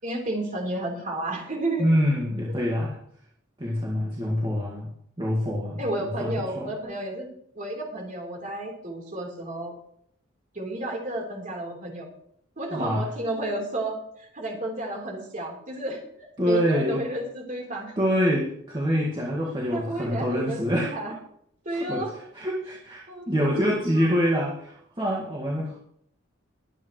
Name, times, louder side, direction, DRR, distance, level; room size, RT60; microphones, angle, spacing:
voice 1, 0.0-1.9 5.8-7.3 7.5-9.8 10.5-12.1 12.6-18.0 19.7-21.1 21.6-22.1 23.1-24.1, right 1 dB, 40° right, -1 dB, 3.9 m, -32 dB
voice 2, 1.8-3.0 3.6-4.9 5.2-5.8 6.2-6.7 12.7-13.1 16.4-17.0 18.0-20.9 21.8-22.0 22.3-25.8, equal, 25° right, -4 dB, 2.0 m, -25 dB
22.0 x 9.1 x 3.2 m, 0.68 s
head